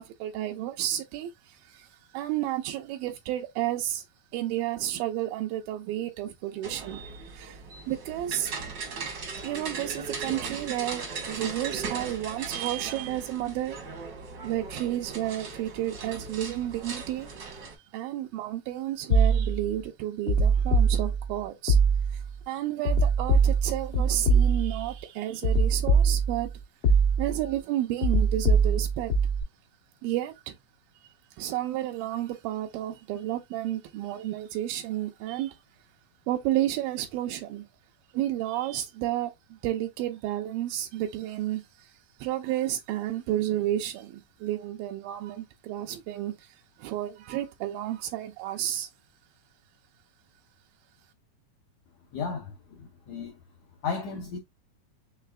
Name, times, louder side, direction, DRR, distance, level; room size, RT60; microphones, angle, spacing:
voice 1, 0.0-1.9 2.1-4.0 4.3-7.6 7.9-8.5 9.0-9.1 9.4-13.8 14.4-17.3 17.9-21.8 22.1-26.5 27.2-29.1 30.0-30.6 31.4-35.6 36.3-37.7 38.1-41.9 42.2-46.5 46.8-48.9, right 13 dB, 85° right, 2.3 m, -31 dB
sound 1, 6.6-17.7, right 4 dB, 60° right, 1.2 m, -38 dB
sound 2, 19.1-19.7 20.3-21.3 21.7-22.3 22.8-24.9 25.4-26.5 26.8-27.5 28.0-29.4, right 3 dB, 65° left, 1.4 m, -23 dB
voice 2, 52.1-53.3 53.8-54.4, left 5 dB, 80° left, 1.6 m, -34 dB
5.7 x 3.3 x 2.3 m
omnidirectional pair, 4.1 m